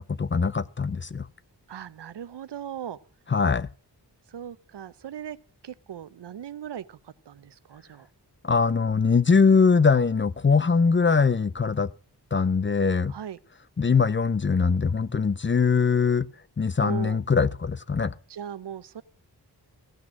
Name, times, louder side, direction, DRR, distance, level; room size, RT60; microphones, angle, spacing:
voice 1, 0.2-1.3 3.3-3.7 8.4-11.9 12.3-13.1 13.8-16.3 16.6-18.1, left 5 dB, 30° left, 0.5 m, -22 dB
voice 2, 1.7-3.0 4.3-5.4 5.6-7.0 7.3-8.1 13.1-13.4 16.8-17.2 18.3-19.0, right 9 dB, 80° right, 0.7 m, -38 dB
15.5 x 6.1 x 7.3 m
wide cardioid pair, 75°, 41 cm